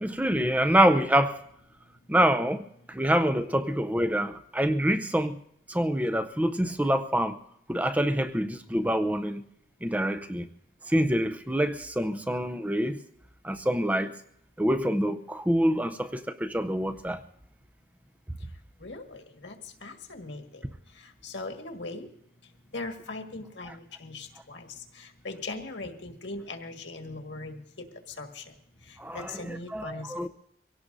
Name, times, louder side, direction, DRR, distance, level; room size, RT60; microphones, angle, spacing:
voice 1, 0.0-1.4 2.1-5.4 5.7-7.4 7.7-9.4 9.8-10.5 10.9-13.0 13.4-14.1 14.6-17.2 29.0-30.3, right 1 dB, 10° right, 9 dB, 0.5 m, -26 dB
voice 2, 18.8-22.1 22.7-28.5 28.9-30.3, left 2 dB, 80° left, 4 dB, 1.7 m, -40 dB
24.0 x 17.5 x 2.6 m, 0.72 s
head